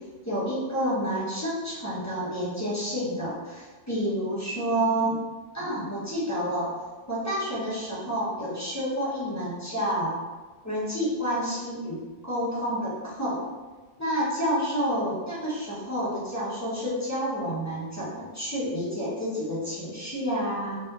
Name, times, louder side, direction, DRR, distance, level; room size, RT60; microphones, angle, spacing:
voice 1, 0.2-5.2 5.5-6.7 7.1-10.1 10.6-13.4 14.0-20.8, equal, 15° left, -9 dB, 1.2 m, -29 dB
5.2 x 2.8 x 2.6 m, 1.3 s
omnidirectional pair, 1.3 m